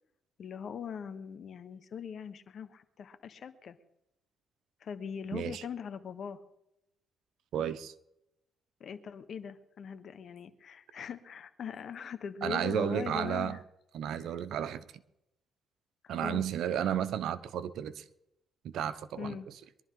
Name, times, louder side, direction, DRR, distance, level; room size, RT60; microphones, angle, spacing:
voice 1, 0.4-3.8 4.8-6.4 8.8-13.6 14.1-14.4 16.0-16.4 19.2-19.5, left 7 dB, 60° left, 1.2 m, -41 dB
voice 2, 5.3-5.6 7.5-7.9 12.4-13.6 13.9-14.8 16.1-18.0 18.7-19.4, right 9 dB, 75° right, 0.9 m, -32 dB
23.0 x 11.5 x 3.9 m
cardioid pair, 90°, 0 cm